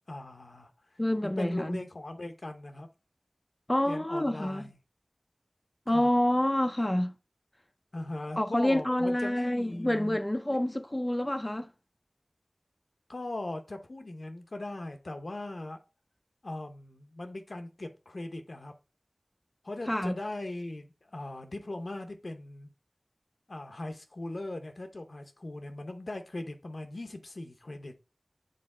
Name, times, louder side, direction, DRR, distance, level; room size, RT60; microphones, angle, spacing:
voice 1, 0.1-0.7 1.2-2.9 3.9-4.8 5.9-6.1 7.9-10.2 10.5-10.8 13.1-15.8 16.4-18.7 19.6-22.7 23.5-27.9, left 2 dB, 75° left, 0.8 m, -39 dB
voice 2, 1.0-1.8 3.7-4.6 5.9-7.1 8.4-11.7 19.9-20.1, left 1 dB, 20° left, 0.4 m, -27 dB
6.6 x 3.9 x 3.7 m
wide cardioid pair, 55°, 0 cm